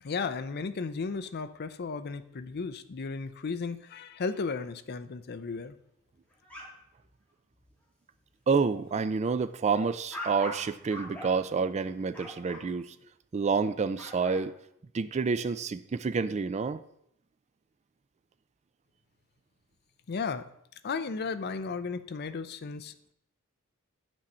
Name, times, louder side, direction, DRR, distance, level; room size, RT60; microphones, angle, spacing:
voice 1, 0.0-5.8 20.1-20.5 20.8-23.1, left 4 dB, 50° left, 11 dB, 0.5 m, -35 dB
sound 1, 6.3-7.1 7.5-7.7 8.1-8.4 8.8-12.6 13.8-14.4, left 1 dB, 5° left, 3.3 m, -43 dB
voice 2, 8.5-12.9 13.3-14.5 14.9-16.8, right 5 dB, 30° right, 14 dB, 0.3 m, -28 dB
9.6 x 6.2 x 4.3 m, 0.76 s
head